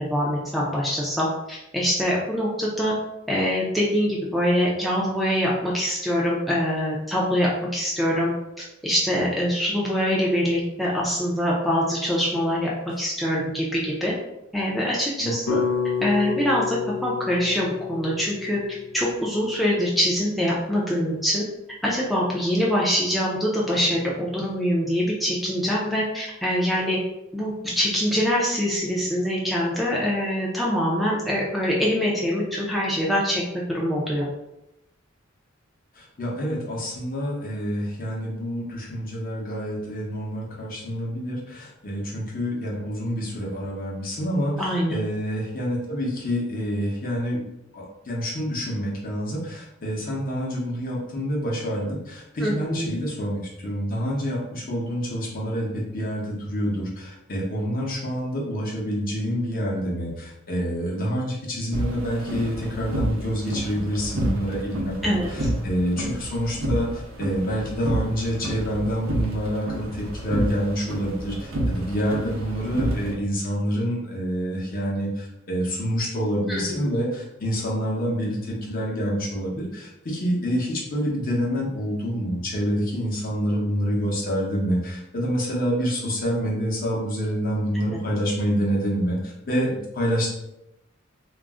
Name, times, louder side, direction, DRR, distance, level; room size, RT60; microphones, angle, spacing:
voice 1, 0.0-2.9 3.3-8.3 8.8-12.7 13.0-14.1 14.5-15.6 16.0-18.6 18.9-21.4 21.8-27.0 27.3-33.4 33.7-34.2 44.6-45.0 52.4-52.9 65.0-65.3 76.5-76.6, equal, ahead, -5 dB, 0.4 m, -24 dB
sound 1, 15.5-19.7, left 6 dB, 75° left, 0.4 m, -29 dB
voice 2, 36.0-44.5 44.9-47.4 47.7-65.2 65.6-90.3, equal, 45° left, -3 dB, 0.7 m, -27 dB
sound 2, 61.7-73.1, right 1 dB, 85° right, 0.6 m, -29 dB
2.4 x 2.0 x 3.5 m, 0.89 s
head